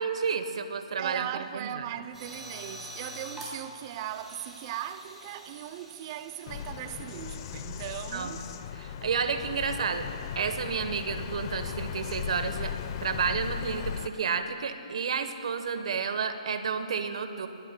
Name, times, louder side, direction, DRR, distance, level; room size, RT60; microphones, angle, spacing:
voice 1, 0.0-1.3 1.5-1.9 8.1-8.4 8.7-10.1 10.3-17.5, right 6 dB, 65° right, 1.0 m, -31 dB
voice 2, 1.0-8.5, right 11 dB, 35° right, 0.5 m, -38 dB
sound 1, 2.1-7.6, equal, 10° right, 3.0 m, -46 dB
Bird vocalization bird call bird song, 6.5-14.1, left 8 dB, 40° left, 0.7 m, -37 dB
22.0 x 20.0 x 2.2 m
hypercardioid pair, 145°, 4 cm